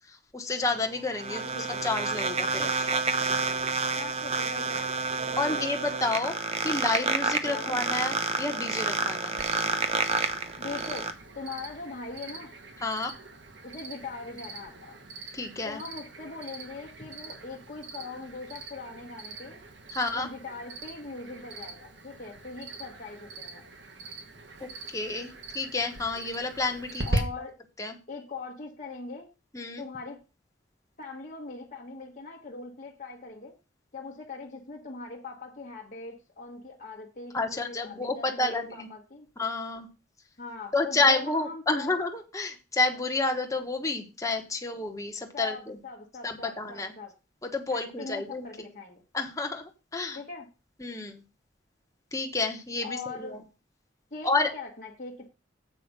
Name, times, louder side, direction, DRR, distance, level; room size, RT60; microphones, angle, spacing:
voice 1, 0.3-1.4 1.8-3.0 5.4-6.3 6.6-9.4 12.8-13.1 15.3-15.8 19.9-20.3 24.6-27.2 27.8-27.9 29.5-29.8 37.3-38.9 39.4-39.9 40.7-45.8 46.2-46.9 47.4-48.5 49.1-50.2 50.8-51.1 52.1-53.4 54.2-54.5, left 3 dB, 20° left, 3 dB, 1.1 m, -30 dB
sound 1, 0.6-11.1, right 4 dB, 35° right, 0.9 m, -29 dB
voice 2, 1.3-1.8 3.9-5.7 7.5-7.8 10.6-12.5 13.6-15.0 15.6-19.6 20.1-23.6 27.0-27.5 28.1-29.3 29.8-30.2 31.0-33.5 33.9-39.3 40.4-42.0 45.3-47.1 47.7-49.0 50.1-50.5 52.8-53.4 54.1-55.3, left 4 dB, 45° left, -2 dB, 1.3 m, -41 dB
Cricket, 9.4-27.2, right 2 dB, 70° right, 1.5 m, -41 dB
7.6 x 5.0 x 6.6 m, 0.32 s
head